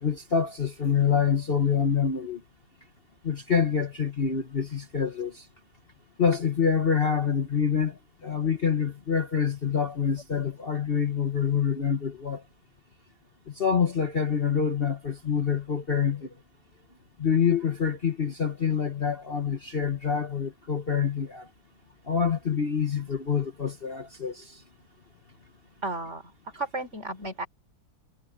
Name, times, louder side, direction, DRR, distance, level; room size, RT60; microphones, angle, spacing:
voice 1, 0.0-2.4 3.2-5.4 6.2-12.4 13.6-16.3 17.2-21.5 22.1-24.6, left 7 dB, 35° left, 1.4 m, -26 dB
voice 2, 25.8-27.5, right 2 dB, 40° right, 4.2 m, -34 dB
omnidirectional pair, 1.9 m